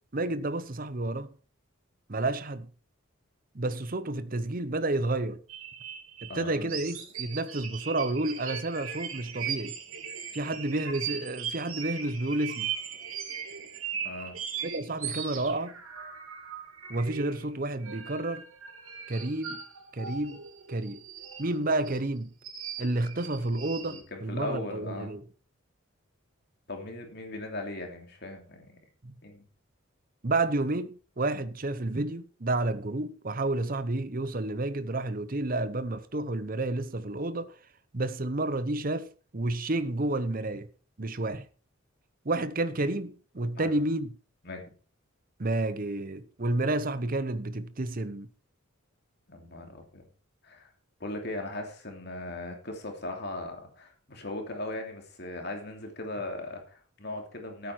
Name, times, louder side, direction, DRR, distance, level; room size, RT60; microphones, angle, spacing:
voice 1, 0.1-1.3 2.1-2.7 3.5-5.4 6.2-9.7 10.3-12.7 14.6-15.7 16.9-18.4 19.1-19.6 19.9-20.4 20.7-21.0 21.4-22.3 22.8-25.2 29.0-29.1 30.2-37.5 37.9-40.7 41.0-41.5 42.2-44.1 45.4-48.3, right 2 dB, 40° right, 0.8 m, -30 dB
sound 1, 5.5-17.5 17.8-22.0 22.4-24.0, right 8 dB, 90° right, 2.9 m, -39 dB
voice 2, 6.3-6.8 14.0-14.3 23.8-25.1 26.7-28.8 29.2-29.4 43.5-43.7 44.4-44.7 49.3-50.0 50.4-50.7 51.0-57.7, left 2 dB, 50° left, 2.9 m, -38 dB
13.5 x 9.2 x 4.5 m
head